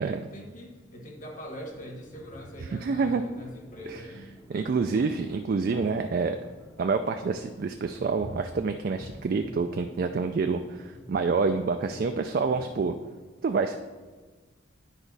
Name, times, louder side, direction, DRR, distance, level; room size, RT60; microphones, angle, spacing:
voice 1, 0.0-5.3, equal, 40° left, 2 dB, 1.3 m, -43 dB
sound 1, 1.5-12.9, equal, 15° left, 0.6 m, -48 dB
voice 2, 2.7-3.2 3.9-4.0 4.5-6.4 6.8-12.9 13.4-13.8, right 4 dB, 45° right, 6 dB, 0.3 m, -27 dB
10.0 x 4.9 x 4.0 m, 1.3 s
head